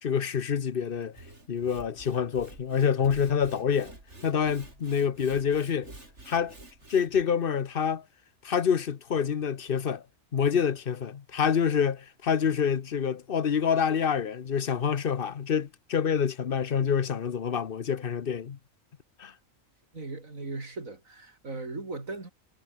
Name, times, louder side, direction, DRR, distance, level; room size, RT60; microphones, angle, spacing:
voice 1, 0.0-1.2 1.5-3.9 4.2-5.9 6.3-6.5 6.9-8.0 8.4-10.0 10.3-18.6 19.2-19.3, left 7 dB, 45° left, 1.0 m, -27 dB
Sawing / Wood, 1.0-7.2, right 2 dB, 55° right, 6.5 m, -49 dB
voice 2, 19.9-22.3, right 3 dB, 85° right, 4.3 m, -38 dB
omnidirectional pair, 1.4 m